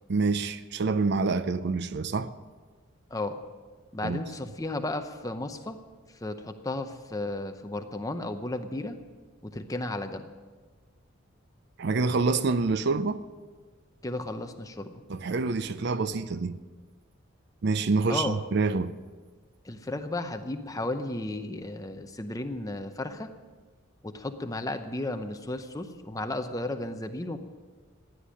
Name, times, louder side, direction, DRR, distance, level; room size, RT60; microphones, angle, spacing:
voice 1, 0.1-2.3 4.0-4.2 11.8-13.2 15.1-16.6 17.6-18.9, right 4 dB, 50° right, 0.5 m, -27 dB
voice 2, 3.9-5.8 6.2-9.0 9.4-10.3 14.0-14.9 18.1-18.4 19.6-23.3 24.0-27.4, left 2 dB, 15° left, 0.7 m, -34 dB
15.5 x 10.0 x 6.3 m
head